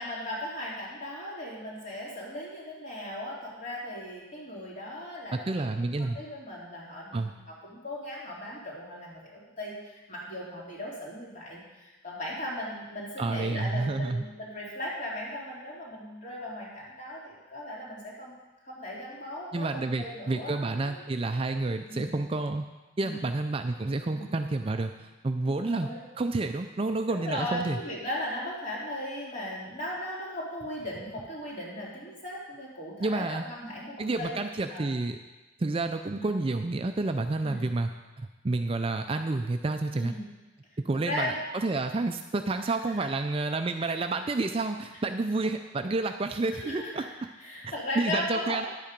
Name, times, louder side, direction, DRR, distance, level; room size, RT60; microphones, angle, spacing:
voice 1, 0.0-5.6 6.0-18.4 18.6-21.0 21.9-22.2 23.0-23.2 24.1-24.3 25.4-26.0 27.1-34.4 34.7-34.9 36.1-36.3 37.4-37.7 39.9-40.3 41.0-41.4 43.0-43.1 46.6-47.1 47.4-48.7, left 1 dB, 35° left, -5 dB, 2.8 m, -37 dB
voice 2, 5.3-6.2 7.1-7.3 13.2-14.2 19.5-22.7 23.0-25.9 26.2-27.8 33.0-33.4 34.0-35.2 35.6-37.9 38.2-40.1 40.8-47.1 47.6-48.7, right 2 dB, 25° right, 7 dB, 0.4 m, -29 dB
10.0 x 8.4 x 5.2 m, 1.1 s
head